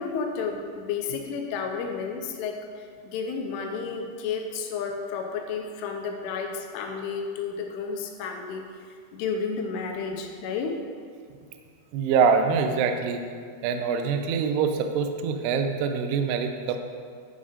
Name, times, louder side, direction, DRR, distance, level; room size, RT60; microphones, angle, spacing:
voice 1, 0.0-8.7 9.1-10.8, left 5 dB, 85° left, 3 dB, 3.2 m, -32 dB
voice 2, 11.9-13.2 13.6-16.8, right 6 dB, 90° right, 6 dB, 2.3 m, -24 dB
11.0 x 5.6 x 5.0 m, 2.1 s
omnidirectional pair, 5.6 m